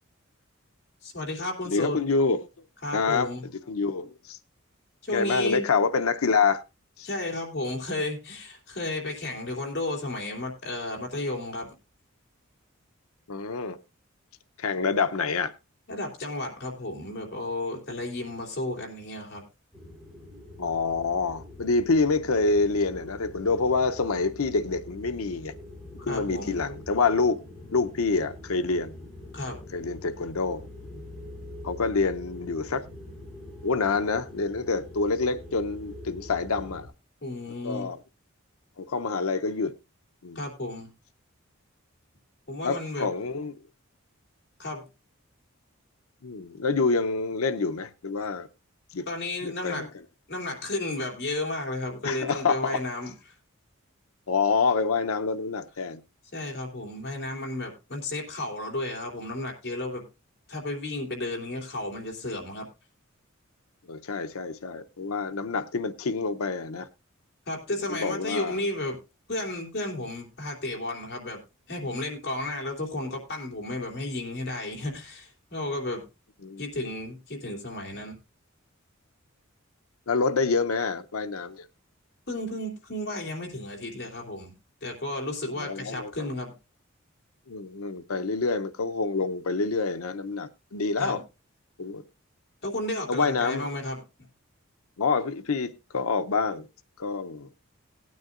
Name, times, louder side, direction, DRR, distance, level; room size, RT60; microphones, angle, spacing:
voice 1, 1.0-2.0 2.8-3.4 5.0-5.7 7.0-11.7 15.9-19.4 26.1-26.6 29.3-29.6 37.2-37.9 40.3-40.9 42.5-43.1 44.6-44.8 49.1-49.8 50.3-53.1 56.3-60.0 60.5-62.6 67.5-69.0 69.3-71.4 71.7-76.0 76.6-78.2 82.3-84.5 84.8-86.5 91.0-91.2 92.6-94.0, left 2 dB, 50° left, 3.0 m, -33 dB
voice 2, 1.6-2.5 2.9-4.4 5.1-6.6 7.0-7.1 13.3-13.8 14.6-15.5 20.6-25.5 26.0-27.4 27.7-28.9 29.7-30.7 31.6-32.8 33.6-36.9 37.6-38.0 38.8-39.7 40.2-40.4 42.6-43.5 46.2-48.5 48.9-49.0 49.4-49.9 52.0-52.8 54.3-56.0 63.9-66.9 67.9-68.6 76.4-76.6 80.1-81.7 85.5-86.1 87.5-91.2 91.8-92.0 93.1-93.7 95.0-96.7 97.0-97.5, left 4 dB, 85° left, 0.7 m, -27 dB
sound 1, 19.7-36.9, left 1 dB, ahead, 4.9 m, -44 dB
18.5 x 9.4 x 2.5 m
head